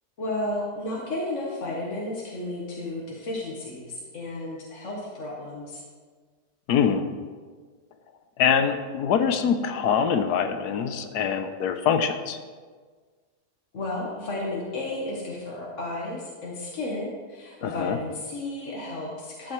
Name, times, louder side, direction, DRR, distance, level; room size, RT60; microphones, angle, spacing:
voice 1, 0.2-5.8 13.7-19.5, left 2 dB, 50° left, -4 dB, 1.6 m, -33 dB
voice 2, 6.7-7.0 8.4-12.4 17.6-18.0, left 7 dB, 90° left, 8 dB, 1.3 m, -24 dB
12.5 x 8.7 x 3.2 m, 1.5 s
omnidirectional pair, 1.6 m